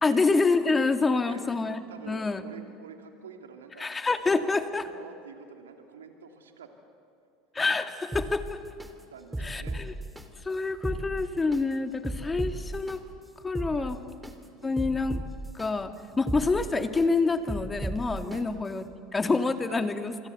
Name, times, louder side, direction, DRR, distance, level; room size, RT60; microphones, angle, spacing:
voice 1, 0.0-2.4 3.8-4.9 7.5-8.6 9.4-9.9 10.4-13.0 13.4-14.0 14.6-15.2 15.5-18.8 19.1-20.1, left 3 dB, 20° left, 7 dB, 2.0 m, -27 dB
voice 2, 1.9-3.9 4.4-6.7 9.1-9.8 13.7-14.0 14.6-14.9 18.3-18.5 19.7-19.9, right 6 dB, 85° right, 4 dB, 2.6 m, -47 dB
sound 1, 8.1-8.9 9.3-10.2 10.7-11.6 12.0-13.0 13.4-14.3 14.8-15.7 16.1-17.0 17.5-18.4 18.8-18.9, right 1 dB, 5° right, 2.9 m, -35 dB
27.5 x 25.5 x 8.1 m, 2.3 s
hypercardioid pair, 80°, 0 cm